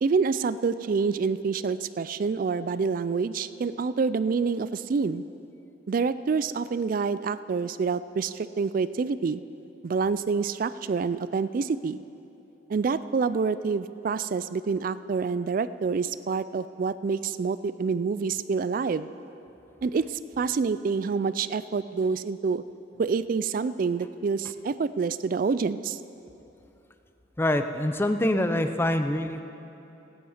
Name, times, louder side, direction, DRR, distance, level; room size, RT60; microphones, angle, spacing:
voice 1, 0.0-5.2 5.9-9.4 9.8-12.0 12.7-19.1 19.8-22.6 23.0-26.0, right 5 dB, 45° right, 15 dB, 0.3 m, -27 dB
voice 2, 27.4-29.4, left 1 dB, 10° left, 7 dB, 0.5 m, -25 dB
16.5 x 9.7 x 5.0 m, 2.9 s
head